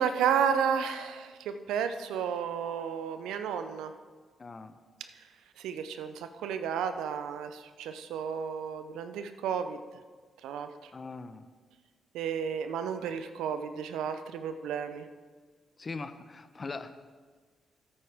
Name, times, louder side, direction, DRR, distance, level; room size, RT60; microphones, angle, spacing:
voice 1, 0.0-3.9 5.2-5.3 5.6-9.8 10.4-10.9 12.1-15.1, right 7 dB, 80° right, 9 dB, 0.6 m, -32 dB
voice 2, 4.4-4.8 10.9-11.5 15.8-17.0, left 3 dB, 40° left, 10 dB, 0.7 m, -41 dB
13.5 x 8.8 x 3.5 m, 1.5 s
hypercardioid pair, 45°, 0 cm